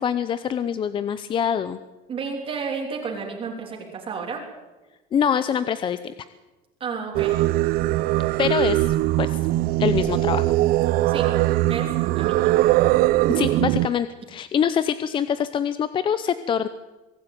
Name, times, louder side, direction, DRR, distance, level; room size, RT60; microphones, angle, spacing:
voice 1, 0.0-1.8 5.1-6.1 8.4-9.4 9.8-10.5 13.3-16.7, left 8 dB, 25° left, 13 dB, 0.7 m, -24 dB
voice 2, 2.1-4.5 6.8-7.4 11.1-11.4 11.7-12.5, right 5 dB, 30° right, 0 dB, 3.3 m, -32 dB
Singing, 7.1-13.9, right 16 dB, 55° right, 0.6 m, -21 dB
23.5 x 12.5 x 9.1 m, 1.1 s
cardioid pair, 155°, 18 cm